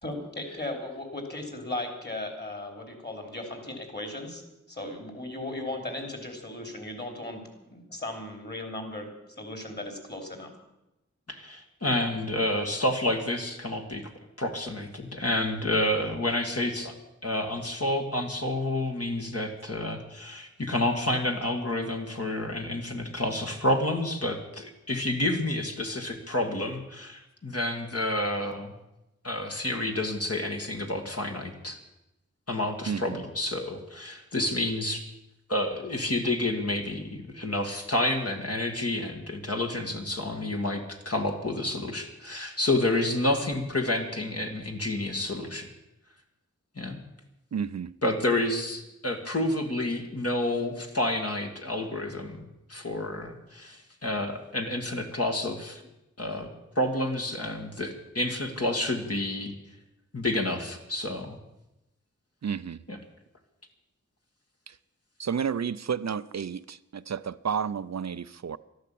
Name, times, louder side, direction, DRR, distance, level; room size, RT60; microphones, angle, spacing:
voice 1, 0.0-4.4 4.7-9.1 9.4-10.5, left 2 dB, 35° left, 4 dB, 3.6 m, -37 dB
voice 2, 11.3-14.1 14.4-16.9 17.2-28.7 29.2-31.8 32.5-35.1 35.5-45.7 46.8-47.0 48.0-55.8 56.2-56.5 56.8-59.5 60.1-61.4 62.9-63.0, left 1 dB, 55° left, 3 dB, 2.0 m, -29 dB
voice 3, 32.9-33.2 47.5-47.9 62.4-62.8 64.7-64.8 65.2-68.6, right 7 dB, 65° right, 15 dB, 0.5 m, -31 dB
13.0 x 11.5 x 8.5 m, 0.91 s
wide cardioid pair, 60°, 29 cm